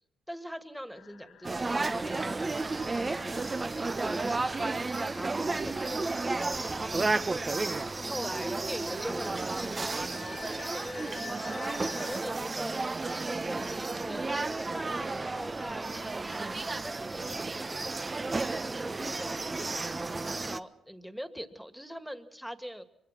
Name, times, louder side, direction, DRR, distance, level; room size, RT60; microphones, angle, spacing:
voice 1, 0.3-2.4 2.7-3.5 4.0-4.6 5.1-6.6 8.0-10.1 10.4-12.8 13.1-19.6 20.2-22.8, equal, ahead, 10 dB, 2.2 m, -43 dB
sound 1, 0.9-12.2, left 7 dB, 75° left, 2.2 m, -51 dB
sound 2, 1.4-20.6, right 3 dB, 30° right, 1.1 m, -32 dB
24.0 x 23.5 x 6.0 m, 0.82 s
supercardioid pair, 55°, 0 cm